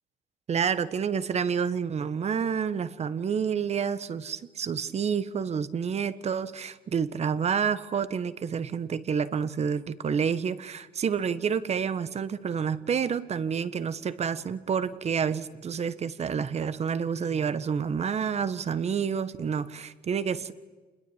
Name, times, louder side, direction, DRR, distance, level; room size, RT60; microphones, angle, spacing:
voice 1, 0.5-20.5, right 7 dB, 40° right, 1.5 m, -29 dB
28.0 x 21.0 x 10.0 m
cardioid pair, 110°, 17 cm